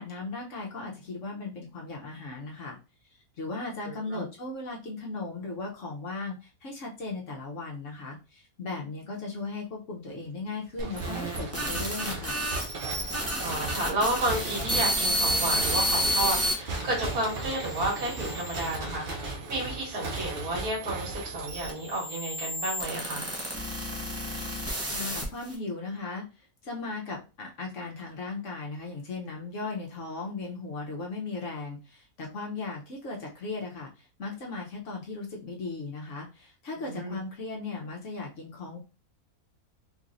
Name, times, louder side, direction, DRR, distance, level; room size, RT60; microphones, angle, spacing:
voice 1, 0.0-2.8 3.4-12.4 24.9-38.8, left 3 dB, 60° left, 0 dB, 1.1 m, -37 dB
voice 2, 3.8-4.3 13.4-23.3 36.9-37.2, right 1 dB, 75° right, -2 dB, 2.0 m, -31 dB
sound 1, 10.8-16.5 17.2-18.8 19.6-25.5, equal, 15° right, 0.5 m, -31 dB
sound 2, 10.8-22.0, right 3 dB, 50° right, 0.7 m, -37 dB
3.8 x 3.0 x 2.5 m, 0.31 s
omnidirectional pair, 1.6 m